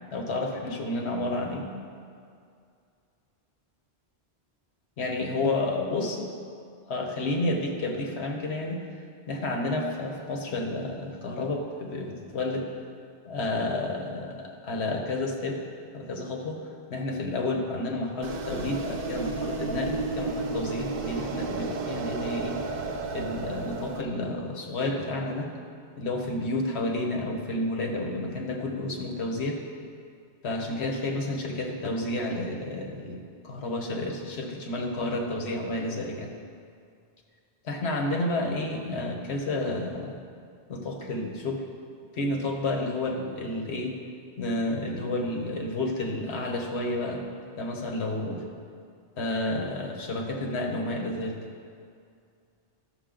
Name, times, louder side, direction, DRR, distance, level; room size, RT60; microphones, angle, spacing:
voice 1, 0.1-1.7 5.0-6.3 6.9-8.8 9.3-12.7 13.2-15.6 15.9-22.6 23.1-25.5 26.0-29.6 30.4-36.3 37.6-40.2 40.7-41.6 42.1-43.9 44.4-47.2 47.6-48.4 49.2-51.4, left 2 dB, 75° left, 1 dB, 1.3 m, -30 dB
sound 1, 18.2-24.0, right 3 dB, 60° right, 0.8 m, -32 dB
11.5 x 6.7 x 3.8 m, 2.3 s
omnidirectional pair, 1.1 m